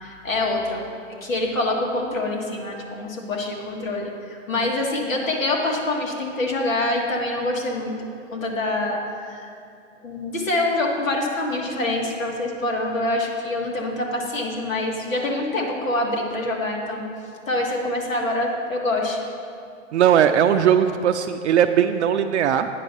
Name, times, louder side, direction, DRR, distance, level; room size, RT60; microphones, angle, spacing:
voice 1, 0.0-8.0 8.3-9.5 10.0-17.0 17.5-19.2, left 2 dB, 90° left, -1 dB, 1.7 m, -25 dB
voice 2, 19.9-22.7, right 9 dB, 65° right, 7 dB, 0.5 m, -18 dB
8.9 x 5.9 x 5.4 m, 2.4 s
hypercardioid pair, 125°, 38 cm